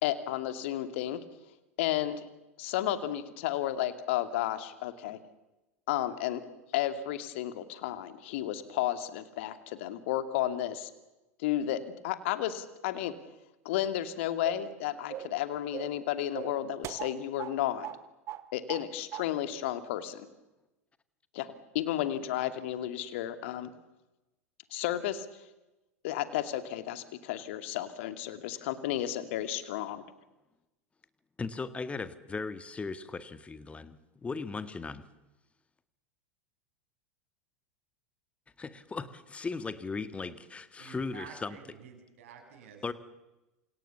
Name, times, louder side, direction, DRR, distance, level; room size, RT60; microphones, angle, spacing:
voice 1, 0.0-1.2 1.8-2.3 2.6-5.2 5.9-6.4 6.7-10.9 11.4-13.1 13.6-17.9 18.5-20.3 21.3-23.7 24.7-25.3 26.0-30.0, left 12 dB, 55° left, 11 dB, 2.4 m, -32 dB
sound 1, 14.4-14.7 15.1-15.4 15.7-16.0 16.3-17.6 17.8-18.0 18.3-18.9 19.1-19.3, right 12 dB, 35° right, 1.7 m, -40 dB
voice 2, 31.4-35.0 38.6-41.6 42.8-42.9, left 4 dB, 15° left, 13 dB, 1.8 m, -37 dB
voice 3, 40.8-42.9, right 6 dB, 55° right, 2 dB, 7.0 m, -50 dB
28.5 x 27.5 x 7.1 m, 1.0 s
figure-of-eight pair, 85°, 8 cm